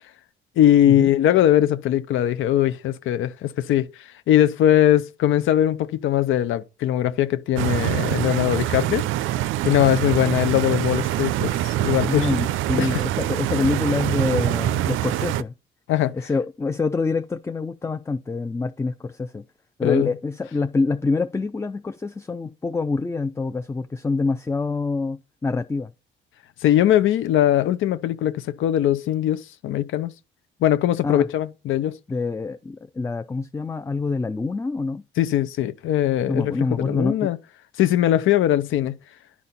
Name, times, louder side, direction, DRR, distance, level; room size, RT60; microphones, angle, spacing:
voice 1, 0.6-3.9 4.3-9.0 9.6-12.3 12.8-13.0 15.9-16.2 19.8-20.1 26.6-30.1 30.6-32.0 35.2-37.4 37.8-39.0, left 12 dB, 80° left, 0.7 m, -20 dB
Stream, 7.6-15.4, right 14 dB, 85° right, 0.4 m, -24 dB
voice 2, 12.1-15.5 16.1-19.4 19.8-25.9 31.0-31.3 32.1-35.0 36.3-37.3, left 3 dB, 15° left, 0.4 m, -26 dB
11.0 x 4.2 x 4.0 m
cardioid pair, 90°, 20 cm